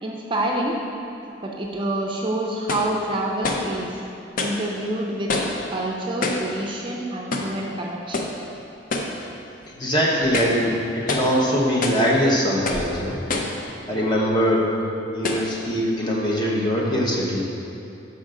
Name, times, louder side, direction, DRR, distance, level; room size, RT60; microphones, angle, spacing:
voice 1, 0.0-0.8 1.4-4.0 4.4-5.3 5.7-8.3, right 1 dB, 30° right, -1 dB, 0.5 m, -27 dB
sound 1, 1.6-1.7 2.7-2.9 3.4-3.7 4.4-4.6 5.3-5.6 6.2-6.5 7.3-7.6 8.1-8.4 8.9-9.2 9.6-9.7 10.2-10.6 11.1-11.4 11.8-12.1 12.6-12.9 13.3-13.6 14.3-14.4 15.2-15.5, left 2 dB, 50° left, 0.5 m, -26 dB
voice 2, 9.7-13.2 13.9-14.7 15.0-17.5, equal, 25° left, -3 dB, 0.9 m, -22 dB
6.3 x 5.6 x 3.7 m, 2.8 s
head